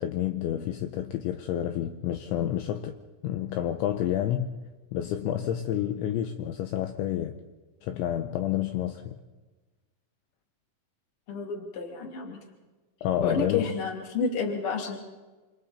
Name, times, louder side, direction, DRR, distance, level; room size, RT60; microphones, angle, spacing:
voice 1, 0.0-2.9 3.2-4.5 4.9-7.3 7.8-9.2 13.0-13.7, left 11 dB, 75° left, 6 dB, 2.9 m, -29 dB
voice 2, 11.3-12.4 13.2-15.0, left 5 dB, 35° left, 2 dB, 2.8 m, -30 dB
27.5 x 27.0 x 4.3 m, 1.2 s
omnidirectional pair, 5.9 m